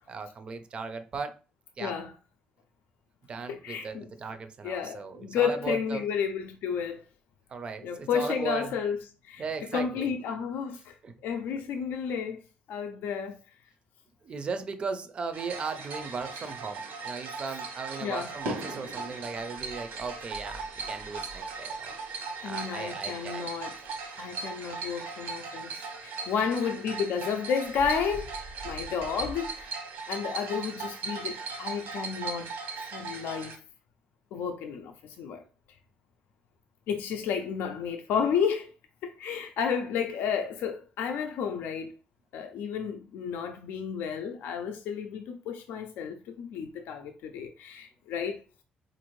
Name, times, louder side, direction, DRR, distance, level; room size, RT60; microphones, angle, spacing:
voice 1, 0.1-1.4 1.8-1.9 3.3-6.0 7.5-8.7 9.4-10.1 11.0-11.1 14.2-21.9 22.4-23.5, right 5 dB, 30° right, 0.4 m, -37 dB
voice 2, 1.8-2.1 3.5-4.1 4.6-7.1 7.8-9.0 9.2-9.4 9.7-11.0 11.2-12.4 12.7-13.4 18.0-18.4 22.4-23.7 24.2-29.7 30.1-32.5 32.9-33.6 34.3-35.4 36.9-38.7 39.0-41.9 42.3-48.4, left 7 dB, 80° left, 0.4 m, -32 dB
sound 1, 15.3-33.6, right 4 dB, 80° right, 1.1 m, -38 dB
4.2 x 2.5 x 3.1 m
cardioid pair, 155°, 3 cm